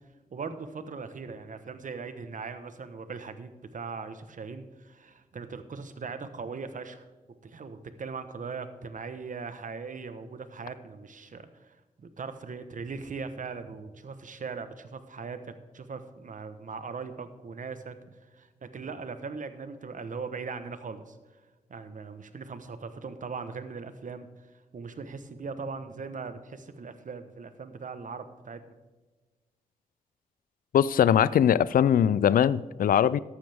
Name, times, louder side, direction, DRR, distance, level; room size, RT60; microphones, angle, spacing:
voice 1, 0.3-7.1 7.4-21.2 21.7-24.5 24.7-28.6, right 5 dB, 60° right, 10 dB, 1.1 m, -40 dB
voice 2, 30.7-33.2, left 9 dB, 80° left, 20 dB, 0.4 m, -21 dB
14.0 x 11.5 x 3.5 m, 1.3 s
cardioid pair, 55°, 15 cm